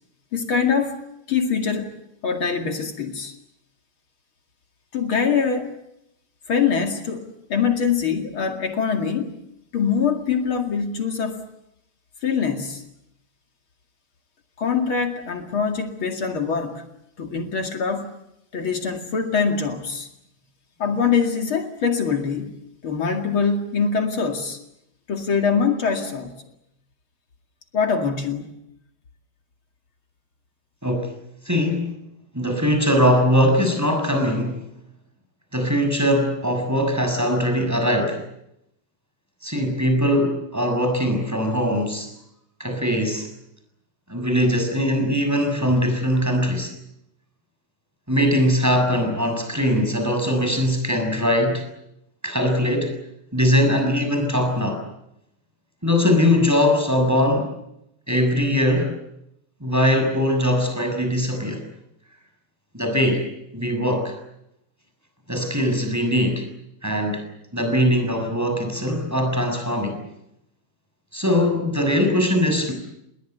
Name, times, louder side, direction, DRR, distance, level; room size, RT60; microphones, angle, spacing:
voice 1, 0.3-1.0 1.3-1.9 2.2-3.3 4.9-5.7 6.5-9.4 9.7-11.4 12.2-12.8 14.6-16.9 17.2-18.1 18.5-20.1 20.8-22.6 22.8-24.6 25.1-26.3 27.7-28.5, left 6 dB, 70° left, 4 dB, 3.0 m, -23 dB
voice 2, 31.5-31.9 32.3-34.5 35.5-38.2 39.4-42.1 42.6-43.3 44.1-46.7 48.1-51.6 52.2-52.9 53.3-54.8 55.8-57.5 58.1-58.9 59.6-61.6 62.7-63.2 63.5-64.1 65.3-66.4 66.8-67.2 67.5-70.0 71.1-72.7, equal, 5° right, 5 dB, 6.8 m, -21 dB
29.0 x 21.5 x 8.1 m, 0.80 s
omnidirectional pair, 2.4 m